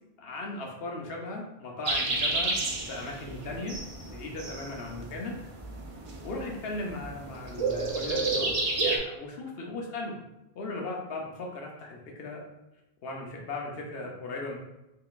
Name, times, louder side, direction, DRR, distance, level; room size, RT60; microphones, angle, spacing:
voice 1, 0.2-2.5 2.9-3.8 4.0-5.4 6.2-8.5 8.8-10.1 10.5-12.4 13.0-14.6, left 2 dB, 70° left, -1 dB, 1.0 m, -37 dB
sound 1, 1.9-9.0, right 3 dB, 45° right, 0.4 m, -31 dB
3.7 x 3.3 x 2.4 m, 0.94 s
omnidirectional pair, 1.0 m